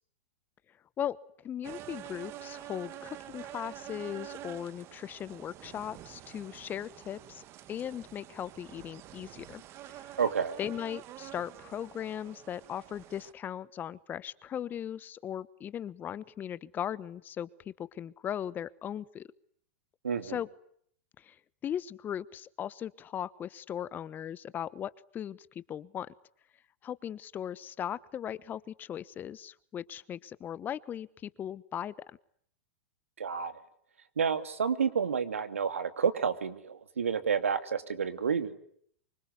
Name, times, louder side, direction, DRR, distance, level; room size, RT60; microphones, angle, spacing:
voice 1, 1.4-9.6 9.9-10.1 10.6-19.3 20.2-20.5 21.2-21.4 21.6-26.1 26.8-32.2, left 9 dB, 25° left, 18 dB, 1.1 m, -38 dB
sound 1, 1.6-13.3, right 13 dB, 40° right, 1.6 m, -47 dB
voice 2, 10.2-10.6 20.0-20.4 33.2-33.5 34.2-38.6, right 6 dB, 90° right, 10 dB, 2.6 m, -30 dB
25.5 x 24.5 x 9.6 m, 0.66 s
hypercardioid pair, 110°, 7 cm